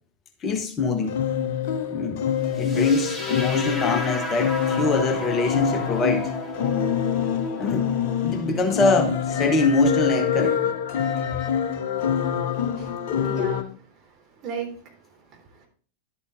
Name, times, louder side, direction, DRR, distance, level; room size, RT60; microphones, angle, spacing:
voice 1, 0.4-1.2 1.9-2.3 2.5-6.3 7.6-7.9 8.2-10.6, left 3 dB, 25° left, 1.0 m, -23 dB
sound 1, 1.0-13.6, left 8 dB, 50° left, 0.8 m, -26 dB
sound 2, 2.5-10.6, left 1 dB, 10° left, 1.5 m, -35 dB
voice 2, 12.8-15.7, right 5 dB, 35° right, 3.4 m, -38 dB
11.5 x 8.3 x 2.5 m
figure-of-eight pair, 90°, 0 cm